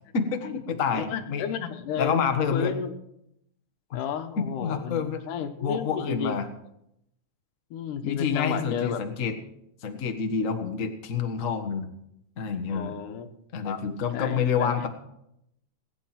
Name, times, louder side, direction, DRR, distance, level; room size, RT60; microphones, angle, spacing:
voice 1, 0.1-1.5 2.0-2.7 4.4-5.2 5.6-6.5 8.0-9.3 9.8-11.9 12.4-12.9 13.5-14.9, left 6 dB, 50° left, 5 dB, 0.9 m, -28 dB
voice 2, 0.9-2.9 3.9-6.4 7.7-9.0 12.7-13.3 13.6-13.8 14.1-14.7, left 8 dB, 85° left, 7 dB, 2.7 m, -32 dB
19.5 x 9.1 x 5.9 m, 0.79 s
omnidirectional pair, 3.6 m